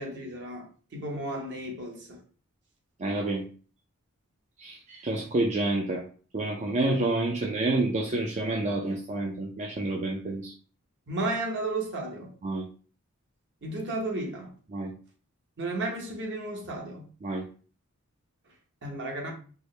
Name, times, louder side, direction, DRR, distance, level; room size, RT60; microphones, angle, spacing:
voice 1, 0.0-2.2 11.1-12.3 13.6-14.5 15.6-17.1 18.8-19.3, right 2 dB, 55° right, 1.0 m, -33 dB
voice 2, 3.0-3.4 4.6-6.0 6.3-10.5 12.4-12.6 14.7-14.9 17.2-17.4, right 2 dB, 35° right, 0.4 m, -28 dB
4.6 x 2.1 x 3.1 m
head